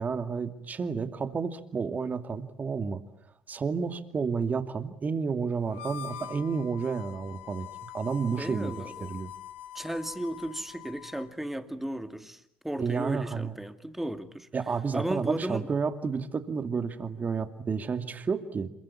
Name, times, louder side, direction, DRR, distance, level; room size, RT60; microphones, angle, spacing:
voice 1, 0.0-3.0 3.5-7.7 7.9-8.8 9.1-9.3 12.8-13.5 14.5-18.7, right 5 dB, 30° right, 9 dB, 2.5 m, -31 dB
Harmonica, 5.7-11.3, left 11 dB, 75° left, 2.2 m, -44 dB
voice 2, 8.4-9.1 9.7-14.5 14.9-15.7, right 1 dB, 5° right, 9 dB, 2.5 m, -35 dB
27.5 x 23.5 x 8.7 m, 0.73 s
hypercardioid pair, 65°, 5 cm